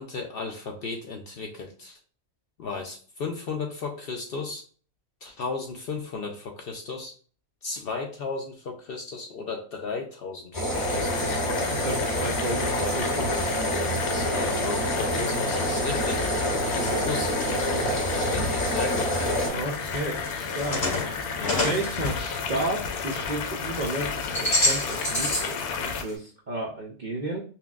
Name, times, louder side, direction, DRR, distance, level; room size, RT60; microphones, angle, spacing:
voice 1, 0.0-2.0 2.6-4.6 5.2-7.1 7.6-11.4 14.1-17.3 17.6-19.2 21.4-21.8, left 4 dB, 70° left, 2 dB, 0.5 m, -35 dB
sound 1, 10.5-19.5, equal, 25° left, 1.5 m, -27 dB
sound 2, 10.7-26.0, left 5 dB, 85° left, 1.1 m, -33 dB
voice 2, 11.7-13.4 16.8-17.1 17.7-17.9 19.4-20.8 21.6-27.4, right 2 dB, 75° right, -1 dB, 0.4 m, -33 dB
sound 3, 19.7-23.2 23.5-25.6 25.9-26.1, left 1 dB, 45° left, 2.0 m, -29 dB
5.6 x 2.1 x 2.3 m, 0.41 s
omnidirectional pair, 1.5 m